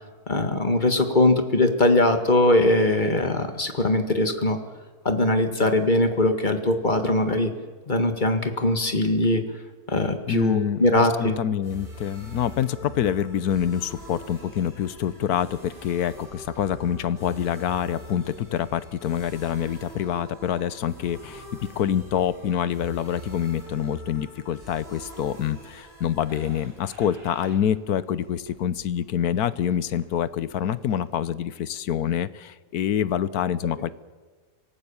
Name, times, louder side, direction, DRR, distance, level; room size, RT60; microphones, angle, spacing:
voice 1, 0.3-4.6 5.1-7.5 7.9-9.4 9.9-11.4, left 2 dB, 30° left, 7 dB, 1.9 m, -21 dB
voice 2, 10.3-21.5 21.8-33.9, left 9 dB, 70° left, 16 dB, 1.3 m, -26 dB
sound 1, 11.6-31.1, right 1 dB, 35° right, 5.9 m, -44 dB
25.0 x 18.0 x 7.1 m, 1.4 s
omnidirectional pair, 1.7 m